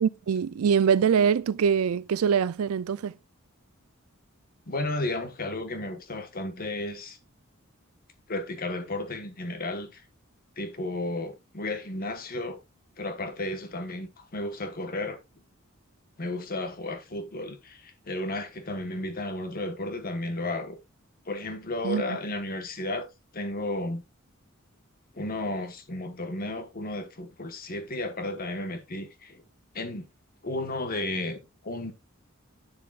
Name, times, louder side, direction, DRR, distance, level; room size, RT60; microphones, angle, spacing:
voice 1, 0.0-3.1 21.8-22.0, right 7 dB, 90° right, 0.4 m, -23 dB
voice 2, 4.7-7.2 8.3-10.0 10.6-12.6 13.0-15.2 16.2-20.8 21.3-23.1 23.3-24.0 25.1-29.4 29.7-30.1 30.4-31.9, left 2 dB, 45° left, 1.3 m, -33 dB
9.8 x 6.8 x 2.4 m
head